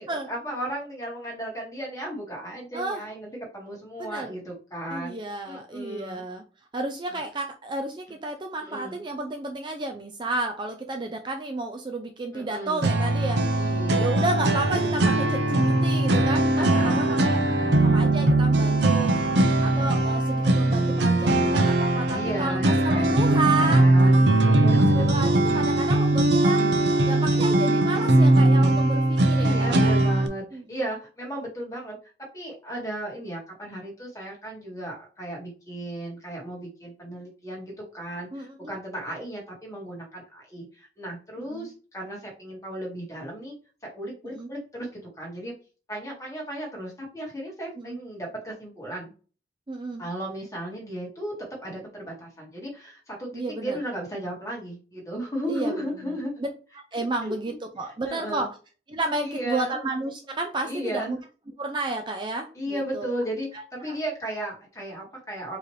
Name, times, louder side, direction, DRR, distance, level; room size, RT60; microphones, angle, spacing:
voice 1, 0.0-5.2 5.4-6.2 7.1-7.2 8.6-9.0 12.3-12.9 13.5-14.1 16.5-17.9 22.1-23.1 23.6-25.1 29.3-32.0 32.3-43.5 43.9-44.9 45.2-45.5 45.9-49.1 50.0-51.3 51.6-56.3 57.0-57.6 58.0-58.5 59.2-59.8 60.6-61.2 62.5-65.6, right 1 dB, 15° left, -2 dB, 1.7 m, -35 dB
voice 2, 2.7-3.1 4.0-4.3 4.9-6.4 6.7-13.6 14.0-17.4 17.8-19.1 19.6-22.6 22.8-24.2 24.9-26.8 27.1-29.9 30.5-30.6 38.3-38.7 41.5-41.7 44.3-44.5 47.8-48.0 49.7-50.0 53.3-53.8 55.5-56.5 56.9-58.5 58.9-61.2 61.6-63.1 63.5-64.0, right 2 dB, 25° right, 4 dB, 0.4 m, -32 dB
sound 1, 12.8-30.3, right 2 dB, 70° right, 0.7 m, -20 dB
4.8 x 3.1 x 3.1 m, 0.36 s
head